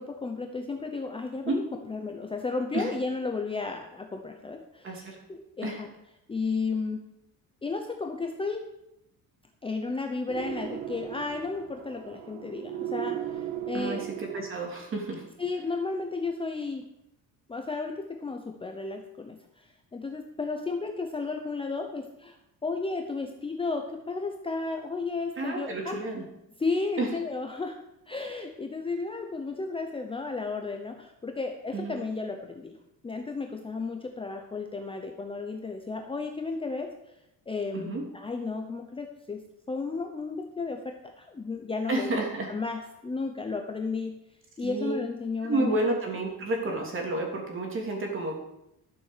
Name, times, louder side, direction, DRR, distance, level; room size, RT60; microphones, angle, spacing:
voice 1, 0.0-5.9 6.3-7.0 7.6-8.6 9.6-14.0 15.4-16.9 17.5-22.4 22.6-26.0 26.6-27.8 28.1-32.7 33.0-36.9 37.5-39.4 39.7-42.2 42.5-44.2 44.6-45.9, left 4 dB, 15° left, 4 dB, 0.8 m, -33 dB
voice 2, 4.8-5.2 5.6-5.8 13.7-15.2 25.4-26.2 27.0-27.1 31.7-31.9 37.7-38.0 41.9-42.5 44.6-45.0 45.4-48.4, right 2 dB, 35° right, 1 dB, 3.1 m, -30 dB
sound 1, 10.3-14.9, right 11 dB, 80° right, 1.6 m, -37 dB
12.5 x 7.1 x 6.7 m, 0.84 s
cardioid pair, 170°, 36 cm